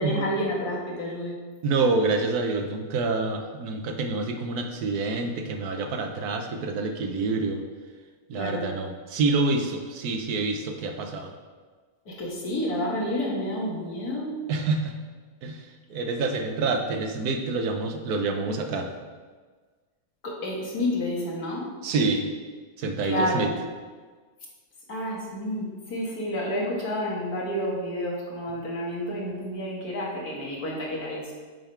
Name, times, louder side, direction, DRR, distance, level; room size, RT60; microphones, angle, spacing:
voice 1, 0.0-1.3 8.3-8.7 12.1-14.4 20.2-21.7 23.0-23.6 24.9-31.3, left 1 dB, 70° left, -4 dB, 2.1 m, -30 dB
voice 2, 1.6-7.6 8.3-11.3 14.5-15.0 15.4-15.6 15.9-18.9 21.8-22.3 22.8-23.5, right 3 dB, 80° right, 5 dB, 1.3 m, -27 dB
9.1 x 3.7 x 4.5 m, 1.4 s
omnidirectional pair, 1.7 m